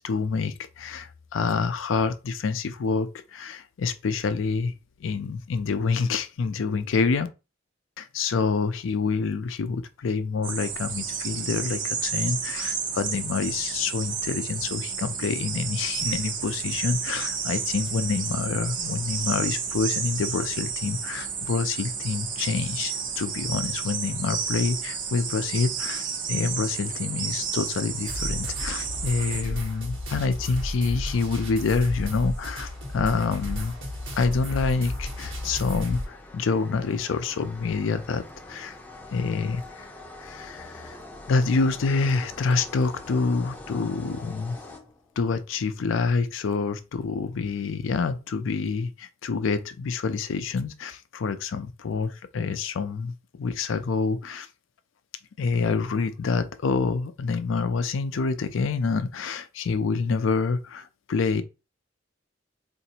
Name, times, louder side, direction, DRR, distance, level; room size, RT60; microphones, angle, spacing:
voice 1, 0.0-4.7 5.0-7.3 8.0-33.8 34.1-38.8 39.1-39.9 40.2-41.0 41.3-44.6 45.2-54.5 55.4-61.4, left 4 dB, 70° left, 0.4 m, -27 dB
sound 1, 10.4-29.4, right 6 dB, 40° right, 0.6 m, -31 dB
sound 2, 28.1-36.1, left 1 dB, 65° right, 1.1 m, -33 dB
sound 3, 28.5-45.3, left 2 dB, 10° left, 0.5 m, -46 dB
4.0 x 2.5 x 2.8 m
head